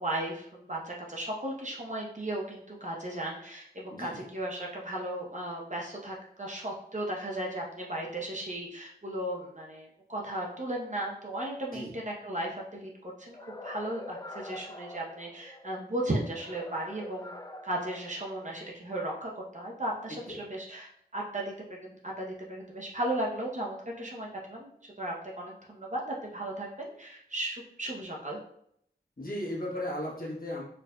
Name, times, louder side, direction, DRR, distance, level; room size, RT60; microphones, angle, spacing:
voice 1, 0.0-17.3 17.6-28.4, right 1 dB, 45° right, -2 dB, 0.8 m, -36 dB
voice 2, 3.9-4.2 11.7-11.9 20.1-20.4 29.2-30.6, left 1 dB, 55° left, -4 dB, 1.2 m, -36 dB
sound 1, 13.3-15.7 16.3-18.8, left 2 dB, 20° left, 0.3 m, -45 dB
4.5 x 2.6 x 2.3 m, 0.69 s
wide cardioid pair, 45°, 18 cm